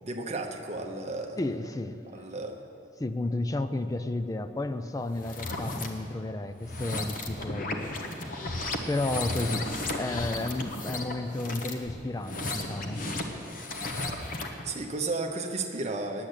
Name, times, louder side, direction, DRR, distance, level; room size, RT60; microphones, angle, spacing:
voice 1, 0.0-1.4 2.1-2.6 14.6-16.3, right 3 dB, 40° right, 3 dB, 0.8 m, -33 dB
voice 2, 1.4-2.0 3.0-7.9 8.9-13.1, left 2 dB, 20° left, 10 dB, 0.4 m, -32 dB
sound 1, 5.1-5.9 6.6-14.6, left 2 dB, 50° left, 1.1 m, -34 dB
10.5 x 8.7 x 8.2 m, 2.8 s
head